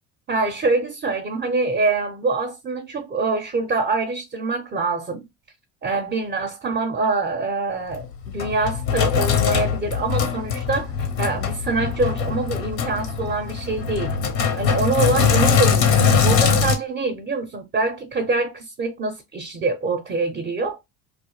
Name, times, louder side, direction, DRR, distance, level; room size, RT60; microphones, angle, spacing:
voice 1, 0.3-5.3 5.8-14.1 14.6-16.0 16.2-20.8, right 3 dB, 20° right, 0.4 m, -25 dB
Sink (filling or washing), 7.9-16.8, left 6 dB, 85° left, 0.7 m, -21 dB
2.2 x 2.0 x 2.9 m
hypercardioid pair, 75°, 50 cm